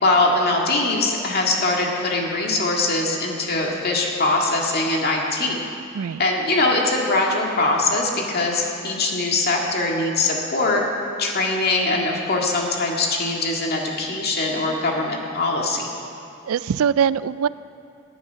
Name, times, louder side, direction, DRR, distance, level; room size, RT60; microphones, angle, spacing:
voice 1, 0.0-5.6 6.2-10.8 11.2-15.8, left 2 dB, 45° left, 0 dB, 2.1 m, -22 dB
voice 2, 16.5-17.5, right 7 dB, 75° right, 18 dB, 0.3 m, -22 dB
19.0 x 10.0 x 5.8 m, 2.7 s
head